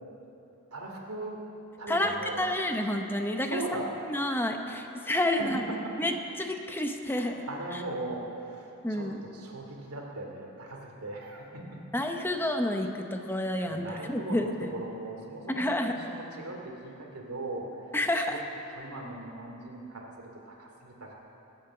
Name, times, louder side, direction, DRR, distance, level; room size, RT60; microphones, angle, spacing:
voice 1, 0.7-1.4 1.8-2.4 3.5-4.0 5.4-6.0 7.1-11.9 12.2-12.4 13.7-17.8 18.2-18.4 18.7-21.1, right 2 dB, 85° right, 0 dB, 2.6 m, -39 dB
voice 2, 1.9-3.6 4.1-5.6 6.0-7.4 8.8-9.2 11.9-14.7 15.5-15.9 17.9-18.3, left 1 dB, 10° left, 4 dB, 0.8 m, -29 dB
21.0 x 8.7 x 7.0 m, 3.0 s
head